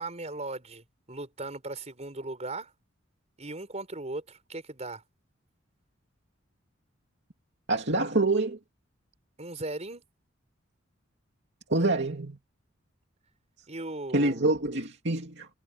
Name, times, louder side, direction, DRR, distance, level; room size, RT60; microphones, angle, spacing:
voice 1, 0.0-2.7 3.4-5.0 9.4-10.0 13.7-14.5, right 2 dB, 35° right, 4.9 m, -38 dB
voice 2, 7.7-8.6 11.7-12.4 14.1-15.5, right 2 dB, 60° right, 2.8 m, -26 dB
head